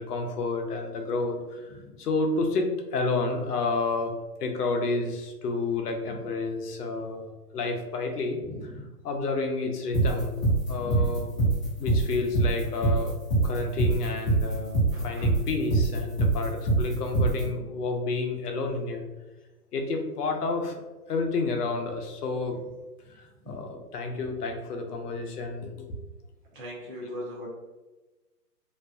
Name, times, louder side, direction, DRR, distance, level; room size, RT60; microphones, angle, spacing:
voice 1, 0.0-2.7 2.9-4.1 4.4-7.2 7.5-8.7 9.0-10.4 10.7-11.3 11.8-19.0 19.7-20.8 21.1-22.6 23.1-25.9, left 3 dB, 70° left, 3 dB, 0.6 m, -30 dB
voice 2, 8.4-8.9 10.8-11.1 14.9-15.2 23.4-23.7 26.5-27.5, equal, 35° right, -6 dB, 0.5 m, -40 dB
sound 1, 9.9-17.4, right 2 dB, 20° left, 0.7 m, -23 dB
2.5 x 2.2 x 2.4 m, 1.1 s
hypercardioid pair, 160°, 49 cm